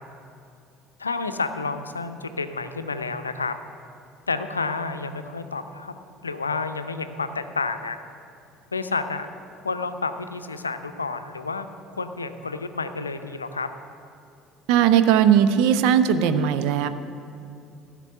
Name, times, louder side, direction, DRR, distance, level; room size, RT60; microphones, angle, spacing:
voice 1, 1.0-3.6 4.3-5.9 6.2-8.0 8.7-9.3 9.6-11.7 11.9-13.7, left 4 dB, 85° left, 9 dB, 0.5 m, -30 dB
voice 2, 14.7-16.9, right 9 dB, 65° right, 11 dB, 0.6 m, -18 dB
14.5 x 6.0 x 6.9 m, 2.5 s
figure-of-eight pair, 60°, 0 cm